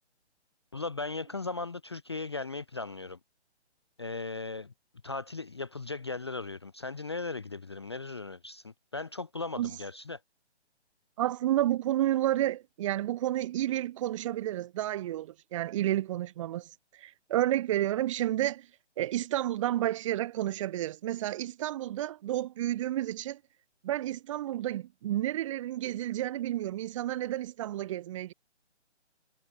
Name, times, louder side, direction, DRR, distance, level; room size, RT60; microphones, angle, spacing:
voice 1, 0.7-3.2 4.0-4.7 5.0-10.2, left 3 dB, 25° left, 0.4 m, -37 dB
voice 2, 11.2-16.7 17.0-18.7 19.0-23.4 23.8-28.3, right 13 dB, 25° right, 1.3 m, -30 dB
figure-of-eight pair, 145°, 35 cm